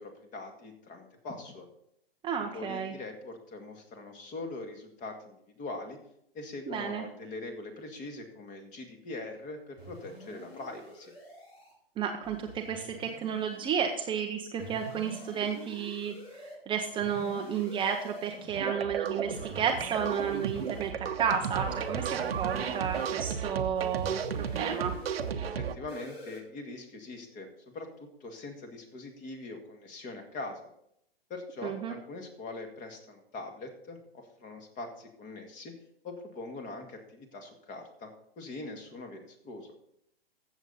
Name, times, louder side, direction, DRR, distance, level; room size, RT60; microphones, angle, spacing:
voice 1, 0.0-1.7 2.5-6.0 6.3-11.1 25.4-30.6 31.3-35.7 36.0-38.1 38.4-39.7, left 2 dB, 25° left, 5 dB, 2.0 m, -42 dB
voice 2, 2.2-2.9 6.7-7.0 12.0-24.9 31.6-31.9, right 7 dB, 15° right, 3 dB, 0.7 m, -32 dB
sound 1, 9.8-11.7 12.2-14.2 14.6-16.6 17.0-18.6 19.3-20.9 21.5-23.2 23.7-25.3 25.9-26.4, equal, 85° left, 4.6 m, -46 dB
sound 2, 18.5-25.7, right 7 dB, 75° right, 1.0 m, -34 dB
14.0 x 7.3 x 4.0 m, 0.76 s
hypercardioid pair, 125°, 30 cm